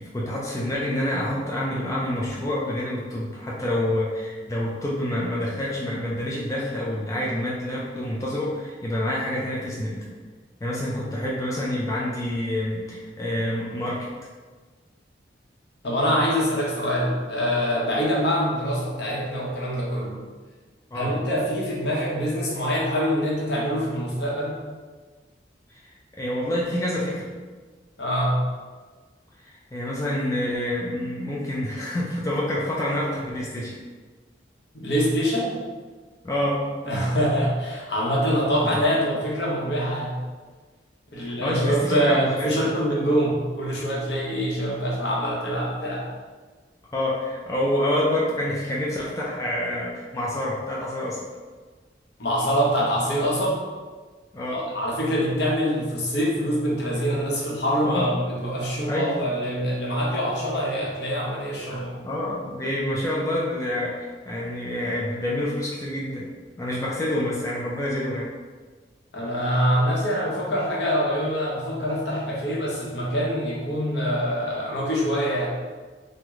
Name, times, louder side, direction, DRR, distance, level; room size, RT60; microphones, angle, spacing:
voice 1, 0.0-10.1 10.6-14.1 20.9-21.1 25.7-25.9 26.2-27.3 29.4-33.8 36.2-36.6 38.6-38.7 41.2-42.7 46.9-51.3 54.3-54.6 57.8-58.1 58.9-59.2 61.7-66.3 66.6-68.3, left 1 dB, 20° left, -5 dB, 0.3 m, -27 dB
voice 2, 15.8-20.2 20.9-24.6 28.0-28.4 34.7-35.6 36.8-40.2 41.1-46.1 52.2-53.6 54.5-62.0 69.1-75.5, equal, 65° left, -4 dB, 0.8 m, -24 dB
3.0 x 2.1 x 3.5 m, 1.4 s
head